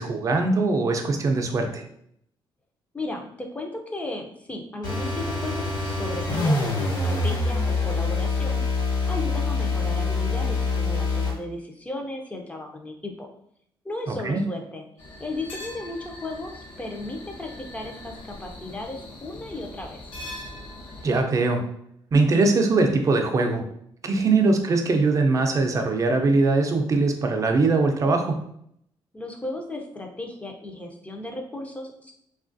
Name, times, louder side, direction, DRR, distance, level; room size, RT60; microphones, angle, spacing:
voice 1, 0.0-1.8 14.1-14.4 21.0-21.6 22.1-23.6 24.0-28.4, right 3 dB, 40° right, 4 dB, 0.4 m, -21 dB
voice 2, 2.9-8.8 9.1-13.3 13.8-14.8 15.2-20.0 24.2-24.5 29.1-32.1, left 2 dB, 15° left, 3 dB, 0.5 m, -35 dB
sound 1, 4.8-11.4, left 3 dB, 45° left, 1.2 m, -25 dB
sound 2, 15.0-21.2, left 1 dB, 70° left, 0.7 m, -41 dB
3.1 x 2.4 x 2.5 m, 0.71 s
cardioid pair, 105°, 9 cm